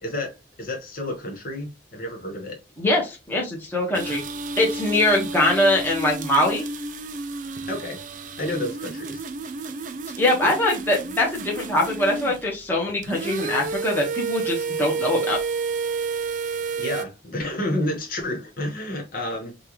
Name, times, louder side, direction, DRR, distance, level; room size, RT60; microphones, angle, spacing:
voice 1, 0.0-2.6 4.1-4.2 7.7-8.0 8.4-9.2 10.4-10.5 16.8-19.5, left 1 dB, 50° left, 1.2 m, -30 dB
voice 2, 2.8-4.2 4.6-6.6 10.2-15.4, left 1 dB, 10° left, 1.1 m, -22 dB
sound 1, 3.9-12.5 12.9-17.1, right 4 dB, 45° right, 0.4 m, -31 dB
5.5 x 2.6 x 2.9 m
head